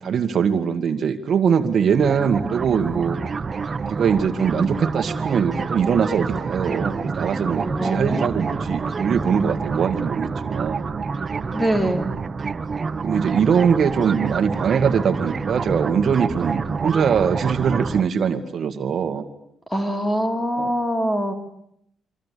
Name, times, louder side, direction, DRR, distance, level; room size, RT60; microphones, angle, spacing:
voice 1, 0.0-3.2 3.9-10.9 13.0-19.3 20.6-20.7, right 7 dB, 50° right, 7 dB, 2.0 m, -22 dB
sound 1, 2.0-18.0, right 4 dB, 30° right, 1.2 m, -27 dB
voice 2, 7.6-8.4 11.5-12.1 19.7-21.3, equal, 10° left, 5 dB, 3.2 m, -23 dB
27.5 x 25.5 x 8.5 m, 0.76 s
cardioid pair, 130°, 0 cm